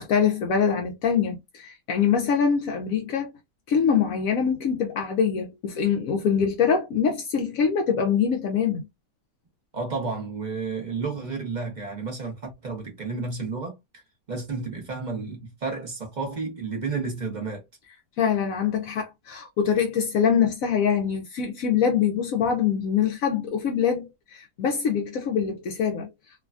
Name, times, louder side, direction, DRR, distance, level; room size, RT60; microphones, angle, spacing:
voice 1, 0.0-3.3 3.7-8.8 18.2-26.1, left 7 dB, 70° left, 0.9 m, -24 dB
voice 2, 9.7-14.0 14.3-17.6, right 4 dB, 35° right, 0.8 m, -31 dB
3.1 x 2.2 x 2.4 m
omnidirectional pair, 1.8 m